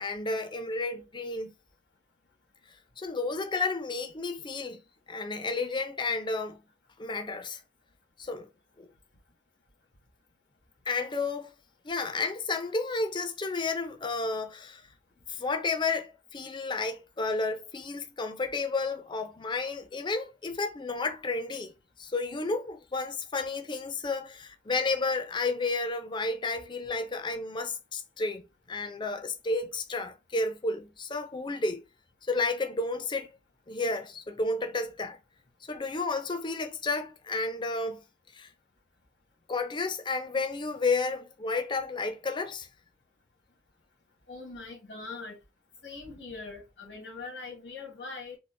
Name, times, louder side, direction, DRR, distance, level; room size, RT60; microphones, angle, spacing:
voice 1, 0.0-1.5 3.0-4.8 5.1-6.6 7.0-7.6 8.2-8.5 8.8-8.9 10.9-11.5 11.8-14.8 15.3-21.7 22.0-28.4 28.7-31.8 32.3-33.3 33.7-35.2 35.7-38.0 38.3-38.5 39.5-42.7, left 3 dB, 25° left, 0.5 m, -31 dB
voice 2, 44.3-45.4 45.8-48.4, left 3 dB, 85° left, 1.3 m, -42 dB
3.7 x 2.5 x 2.5 m
head